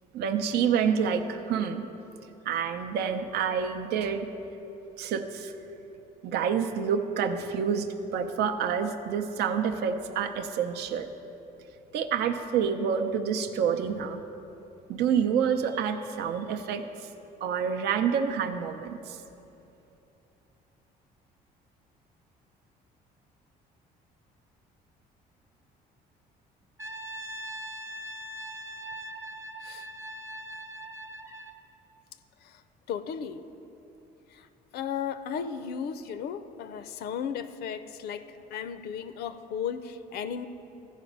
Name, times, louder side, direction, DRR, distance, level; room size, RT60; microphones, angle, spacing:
voice 1, 0.1-1.8 2.5-4.3 5.0-5.5 6.2-11.1 11.9-14.2 14.9-17.1 17.4-19.2, right 7 dB, 75° right, 7 dB, 0.6 m, -28 dB
Brass instrument, 26.8-31.6, right 1 dB, 15° right, 0.7 m, -41 dB
voice 2, 32.9-33.4 34.7-40.5, left 7 dB, 70° left, 11 dB, 0.5 m, -35 dB
14.0 x 5.1 x 5.3 m, 2.9 s
cardioid pair, 110°, 17 cm